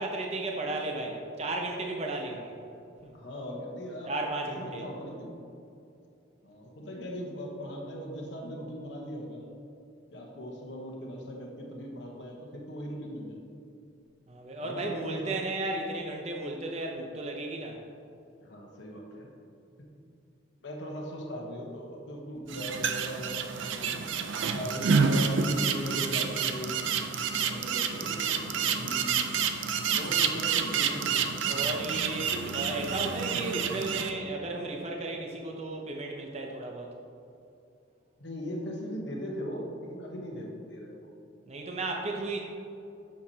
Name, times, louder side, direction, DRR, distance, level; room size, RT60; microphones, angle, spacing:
voice 1, 0.0-2.5 3.0-3.1 4.1-4.8 14.3-17.8 31.5-36.9 41.5-42.4, right 2 dB, 35° right, 1 dB, 0.5 m, -34 dB
voice 2, 3.1-4.1 4.6-5.3 6.4-9.5 10.1-13.4 14.6-15.4 18.4-19.3 20.6-24.1 24.5-26.8 27.4-29.2 29.8-31.6 38.2-41.1, equal, 65° left, -1 dB, 1.0 m, -39 dB
sound 1, 22.5-34.1, right 6 dB, 80° right, 0.5 m, -29 dB
8.1 x 6.7 x 2.8 m, 2.6 s
head